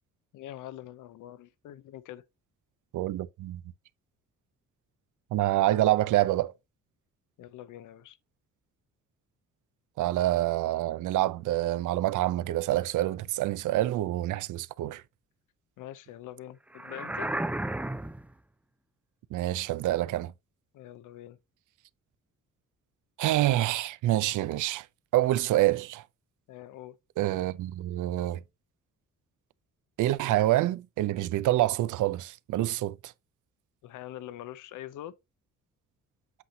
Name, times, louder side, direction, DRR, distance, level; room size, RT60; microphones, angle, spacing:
voice 1, 0.3-2.2 7.4-8.2 15.8-17.4 20.7-21.4 26.5-27.0 33.8-35.1, left 13 dB, 90° left, 0.7 m, -44 dB
voice 2, 2.9-3.6 5.3-6.5 10.0-15.0 19.3-20.3 23.2-24.9 25.1-26.0 27.2-28.4 30.0-33.1, right 15 dB, 85° right, 0.6 m, -27 dB
sound 1, 16.7-18.3, right 1 dB, 5° right, 0.4 m, -33 dB
8.2 x 5.8 x 2.8 m
cardioid pair, 125°, 30 cm